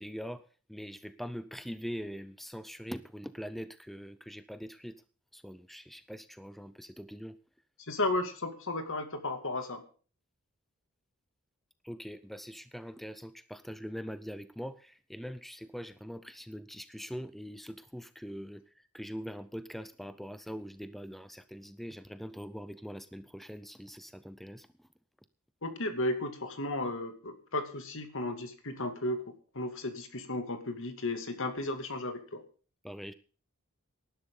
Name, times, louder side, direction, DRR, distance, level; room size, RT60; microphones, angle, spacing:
voice 1, 0.0-5.0 5.3-7.4 11.8-24.9 32.8-33.1, equal, ahead, 13 dB, 0.5 m, -43 dB
voice 2, 7.8-9.8 25.6-32.4, left 2 dB, 60° left, 8 dB, 2.4 m, -34 dB
18.5 x 11.5 x 3.8 m, 0.39 s
head